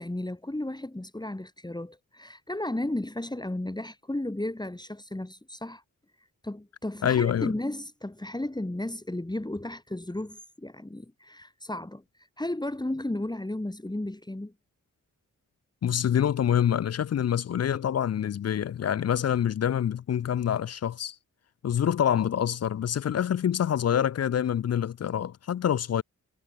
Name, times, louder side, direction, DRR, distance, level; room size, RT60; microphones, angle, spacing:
voice 1, 0.0-5.8 6.4-12.0 12.4-14.5, left 1 dB, 10° left, 3.6 m, -34 dB
voice 2, 7.0-7.5 15.8-21.2 21.6-26.0, left 9 dB, 50° left, 0.5 m, -26 dB
cardioid pair, 70°, 34 cm